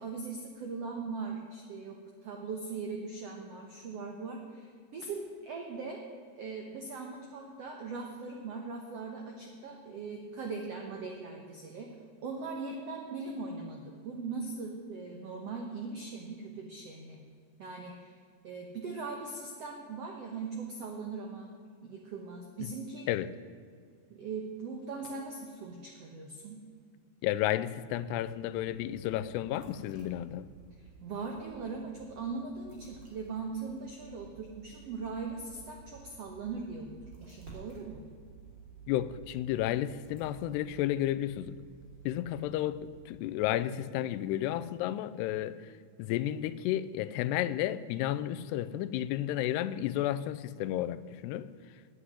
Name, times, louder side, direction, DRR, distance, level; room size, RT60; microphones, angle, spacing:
voice 1, 0.0-6.0 6.3-11.9 12.2-17.2 17.6-18.2 18.4-21.5 21.8-23.1 24.1-26.7 30.8-36.9 37.2-38.0, right 4 dB, 80° right, 1.4 m, -40 dB
voice 2, 27.2-30.5 38.9-41.6 42.1-45.7 46.0-51.5, left 13 dB, 90° left, 2.7 m, -32 dB
sound 1, 28.0-43.7, right 5 dB, 30° right, 3.1 m, -54 dB
10.0 x 9.6 x 9.8 m
omnidirectional pair, 4.7 m